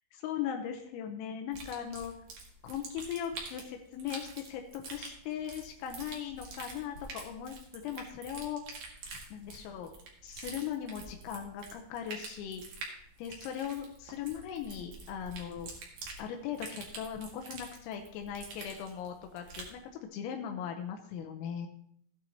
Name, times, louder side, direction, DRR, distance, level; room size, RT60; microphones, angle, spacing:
voice 1, 0.1-2.1 2.6-8.6 9.3-9.9 10.2-12.6 13.2-15.7 16.2-19.8 20.1-21.7, left 9 dB, 85° left, 4 dB, 3.5 m, -39 dB
sound 1, 1.5-19.8, right 3 dB, 55° right, 2.3 m, -47 dB
16.0 x 9.3 x 2.9 m, 0.68 s
omnidirectional pair, 5.9 m